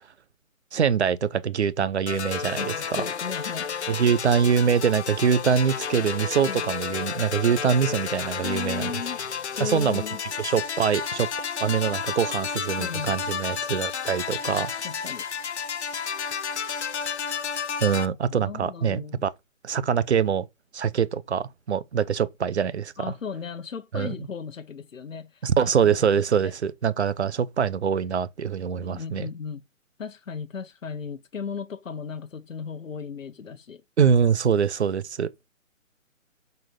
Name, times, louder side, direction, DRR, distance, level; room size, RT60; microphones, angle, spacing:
voice 1, 0.7-3.0 3.9-8.9 9.6-10.0 10.4-11.3 11.6-14.7 17.8-19.3 19.6-20.5 20.7-23.1 23.9-24.2 25.4-29.3 34.0-35.3, right 7 dB, 55° right, 1.0 m, -24 dB
sound 1, 2.1-18.1, left 6 dB, 55° left, 1.0 m, -31 dB
voice 2, 2.6-3.7 6.5-6.7 8.4-9.2 9.6-10.2 12.8-13.2 14.8-15.2 18.0-19.3 23.0-25.7 26.4-26.5 28.8-29.6 30.0-33.8, left 6 dB, 70° left, 1.3 m, -36 dB
7.7 x 4.6 x 5.3 m
hypercardioid pair, 165°, 40 cm